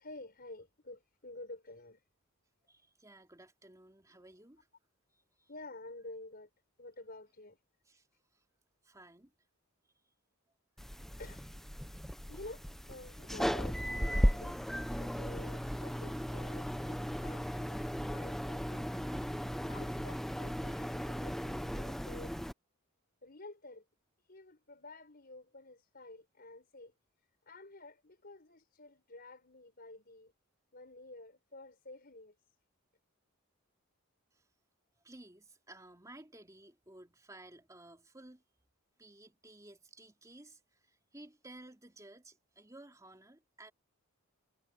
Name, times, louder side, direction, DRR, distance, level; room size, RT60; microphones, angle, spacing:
voice 1, 0.0-2.0 5.5-6.5 6.8-7.6 11.2-11.5 12.3-14.6 15.0-17.8 18.1-18.9 19.6-22.5 23.2-23.8 24.3-26.9 27.4-30.3 30.7-32.3, left 2 dB, 45° left, 5.1 m, -51 dB
voice 2, 2.7-4.7 5.1-5.5 7.9-8.1 8.3-8.4 8.8-9.3 10.8-11.2 34.3-34.4 35.0-38.4 39.0-43.7, right 1 dB, 15° right, 2.9 m, -55 dB
sound 1, 10.8-22.5, equal, ahead, 0.6 m, -36 dB
head